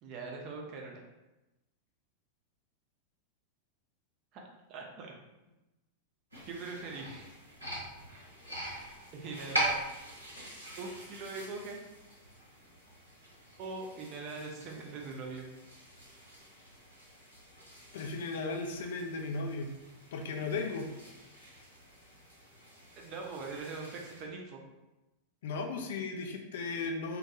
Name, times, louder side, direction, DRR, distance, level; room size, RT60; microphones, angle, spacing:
voice 1, 0.0-1.0 4.3-4.4 4.7-5.1 6.5-7.3 9.1-9.8 10.8-11.8 13.6-15.4 23.0-24.6, right 3 dB, 40° right, 0 dB, 0.5 m, -41 dB
sound 1, 6.3-24.2, right 1 dB, 85° right, 0.8 m, -43 dB
voice 2, 17.9-19.7 20.1-20.9 25.4-27.2, left 3 dB, 60° left, 3 dB, 0.3 m, -36 dB
2.2 x 2.2 x 2.7 m, 1.0 s
figure-of-eight pair, 90°, 0 cm